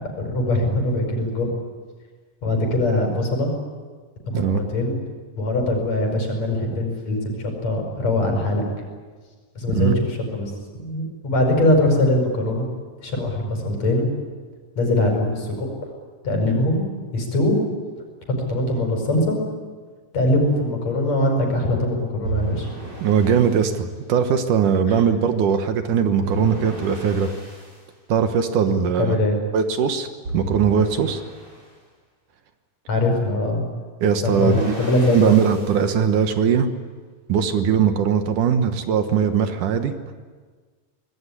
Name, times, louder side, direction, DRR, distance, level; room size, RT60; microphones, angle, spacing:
voice 1, 0.2-1.5 2.4-3.5 4.3-5.0 5.3-8.6 9.6-10.5 10.8-12.7 13.0-14.1 14.8-15.7 16.2-16.8 17.1-17.6 18.5-19.4 20.1-22.7 24.8-25.0 29.0-29.4 32.9-33.7 34.2-35.4, left 1 dB, 50° left, 3 dB, 6.6 m, -22 dB
sound 1, 22.2-23.7 26.2-27.7 30.2-31.6 34.2-35.8, right 2 dB, 40° right, 6.7 m, -32 dB
voice 2, 23.0-27.3 28.1-29.2 29.5-30.1 30.3-31.2 34.0-34.7 35.1-36.7 37.3-39.9, right 7 dB, 70° right, 8 dB, 2.8 m, -20 dB
25.5 x 20.5 x 10.0 m, 1.5 s
omnidirectional pair, 3.9 m